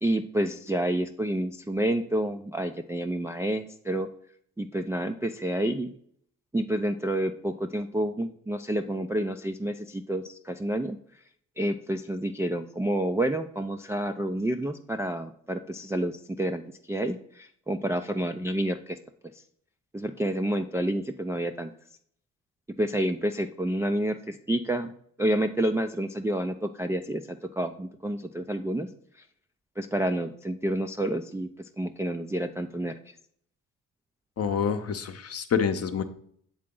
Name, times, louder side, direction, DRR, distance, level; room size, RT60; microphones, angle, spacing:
voice 1, 0.0-4.1 4.6-5.9 6.5-11.0 11.6-16.6 16.9-19.0 19.9-21.7 22.8-24.9 25.2-28.9 29.8-31.5 31.8-32.9, right 1 dB, 10° right, 5 dB, 0.3 m, -29 dB
voice 2, 34.4-36.0, left 7 dB, 40° left, 8 dB, 0.8 m, -27 dB
7.5 x 3.7 x 3.7 m, 0.63 s
hypercardioid pair, 50°, 37 cm